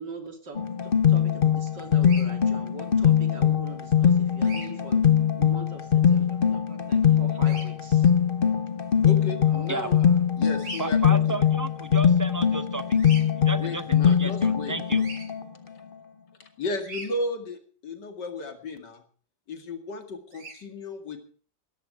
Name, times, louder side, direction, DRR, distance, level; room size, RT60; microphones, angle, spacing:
voice 1, 0.0-5.0 5.4-8.1 9.5-10.2, right 4 dB, 85° right, 5 dB, 3.5 m, -43 dB
sound 1, 0.6-15.4, left 8 dB, 35° left, 1.2 m, -22 dB
Bird vocalization bird call bird song, 2.0-2.3 4.4-4.7 7.4-7.6 10.6-10.9 13.0-13.2 15.0-15.2 16.8-17.1 20.3-20.6, right 2 dB, 70° right, 4.3 m, -39 dB
voice 2, 9.0-10.0 10.4-11.4 13.6-14.8 16.6-19.0 19.5-21.2, left 2 dB, 80° left, 6 dB, 2.9 m, -34 dB
voice 3, 10.8-13.0 13.4-15.0, right 3 dB, 20° right, 12 dB, 0.5 m, -33 dB
17.0 x 14.5 x 4.8 m, 0.42 s
omnidirectional pair, 1.8 m